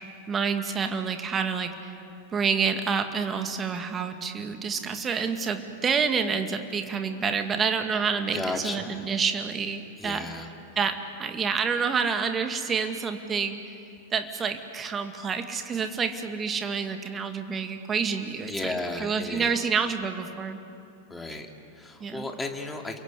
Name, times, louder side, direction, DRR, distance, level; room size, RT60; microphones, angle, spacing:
voice 1, 0.3-1.9 2.3-10.3 10.8-13.6 14.1-18.5 19.0-20.6 22.0-22.3, right 6 dB, 20° right, 6 dB, 2.1 m, -28 dB
voice 2, 8.3-9.1 10.0-10.5 18.5-19.7 21.1-23.0, left 2 dB, 10° left, 3 dB, 2.7 m, -34 dB
29.0 x 23.0 x 8.4 m, 2.6 s
figure-of-eight pair, 90°, 0 cm